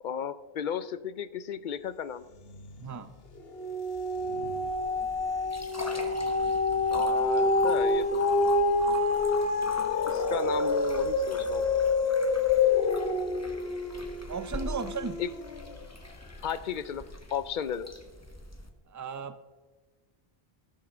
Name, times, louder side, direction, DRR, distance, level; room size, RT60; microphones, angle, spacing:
voice 1, 0.0-2.2 6.9-8.2 10.1-11.7 15.2-15.3 16.4-17.0 17.3-17.9, left 8 dB, 55° left, 14 dB, 0.7 m, -34 dB
sound 1, 2.5-3.0 3.4-15.8 16.4-16.5, left 3 dB, 70° left, 1.3 m, -27 dB
voice 2, 2.8-3.1 14.3-15.2 18.9-19.4, right 5 dB, 20° right, 11 dB, 0.5 m, -35 dB
sound 2, 4.5-18.7, left 1 dB, 15° left, 1.1 m, -43 dB
14.5 x 7.6 x 6.0 m, 1.3 s
omnidirectional pair, 1.0 m